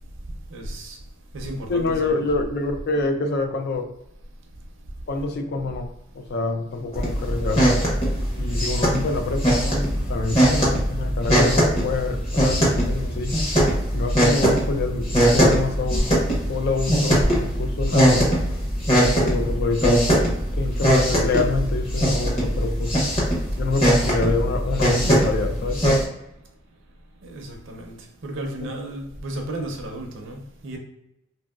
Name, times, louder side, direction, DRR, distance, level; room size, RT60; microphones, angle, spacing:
voice 1, 0.5-1.0 1.3-2.4 27.2-28.0 28.2-30.8, right 1 dB, 65° right, 0.6 m, -34 dB
voice 2, 1.7-3.9 5.1-7.9 8.4-13.4 13.9-18.3 19.0-20.2 20.5-23.0 23.6-25.8, left 3 dB, 55° left, 0.4 m, -27 dB
sound 1, 6.9-26.0, equal, 30° left, 1.0 m, -21 dB
2.9 x 2.7 x 2.3 m
head